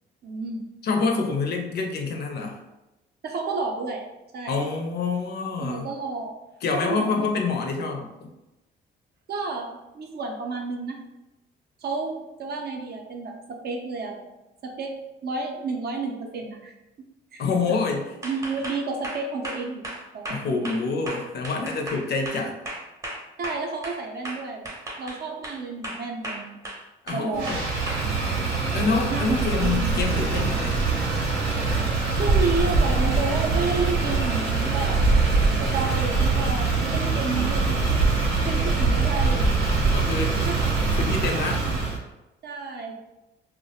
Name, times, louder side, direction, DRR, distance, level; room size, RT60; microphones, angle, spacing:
voice 1, 0.2-0.7 3.2-4.0 4.3-4.6 5.6-6.4 6.7-7.3 9.3-11.0 11.8-14.2 14.6-14.9 15.2-16.7 17.3-17.8 18.2-19.8 20.1-20.7 23.4-24.7 25.0-26.6 27.1-27.6 29.1-29.9 32.0-35.1 35.6-37.9 38.4-39.6 40.4-40.7 41.7-41.8 42.4-43.0, right 4 dB, 55° right, 2 dB, 0.5 m, -31 dB
voice 2, 0.8-2.6 4.5-5.9 6.6-8.3 17.4-18.0 20.3-22.6 27.0-27.6 28.7-31.1 39.9-40.4 41.0-41.7, left 4 dB, 55° left, 3 dB, 0.5 m, -27 dB
sound 1, 18.2-24.0 24.2-25.6 25.8-26.8 27.1-28.4, right 1 dB, 15° right, 0.6 m, -35 dB
Motor vehicle (road), 27.3-42.0, right 4 dB, 85° right, 0.8 m, -23 dB
2.3 x 2.1 x 2.7 m, 0.97 s
cardioid pair, 90°, 20 cm